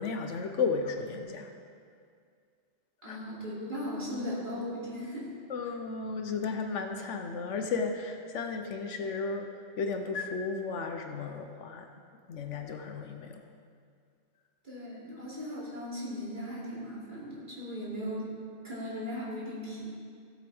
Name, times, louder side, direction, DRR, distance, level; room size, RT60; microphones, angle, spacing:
voice 1, 0.0-1.5 3.1-3.2 5.5-9.5 9.8-11.9 12.3-13.4, left 4 dB, 70° left, 5 dB, 1.1 m, -34 dB
voice 2, 3.0-5.3 14.6-18.3 18.6-19.9, equal, 40° right, -8 dB, 3.1 m, -37 dB
16.5 x 7.7 x 3.5 m, 2.2 s
omnidirectional pair, 1.3 m